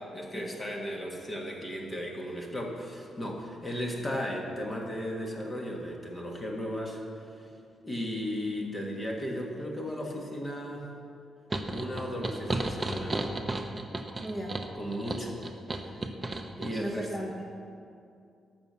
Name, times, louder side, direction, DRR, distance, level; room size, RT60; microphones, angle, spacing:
voice 1, 0.1-7.5 7.8-10.9 11.7-13.2 14.7-15.4 15.7-16.0 16.6-17.2, equal, 20° left, 0 dB, 1.6 m, -35 dB
sound 1, 11.5-16.7, right 2 dB, 15° right, 0.7 m, -33 dB
voice 2, 14.2-14.6 16.7-17.4, right 1 dB, ahead, -3 dB, 1.1 m, -36 dB
12.5 x 6.1 x 6.8 m, 2.4 s
cardioid pair, 130°, 0 cm